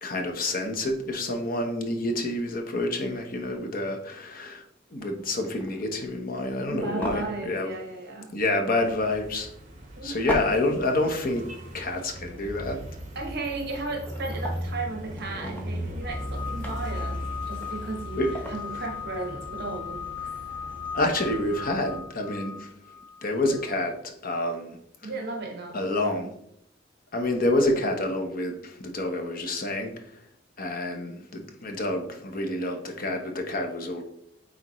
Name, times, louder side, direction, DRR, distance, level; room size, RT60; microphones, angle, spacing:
voice 1, 0.0-4.6 4.9-7.7 8.3-9.5 10.0-11.4 11.7-12.8 18.2-18.3 20.9-22.7 23.2-24.8 25.7-26.3 27.1-30.2 30.6-34.0, left 1 dB, 50° left, 4 dB, 1.0 m, -28 dB
sound 1, 3.2-3.5 4.3-4.5 5.0-6.1 7.0-8.2 8.5-8.6 10.3-11.1 11.4-11.5 13.2-13.3 13.5-14.8 15.2-18.7, equal, 10° left, 0.9 m, -38 dB
voice 2, 6.7-8.3 10.0-10.6 13.1-18.2 18.5-20.3 25.0-25.8, right 3 dB, 55° right, 2 dB, 1.1 m, -35 dB
sound 2, 8.8-22.0, equal, 40° right, 1.5 m, -38 dB
sound 3, 16.0-23.8, left 7 dB, 25° left, 0.5 m, -38 dB
9.1 x 3.7 x 3.1 m, 0.73 s
head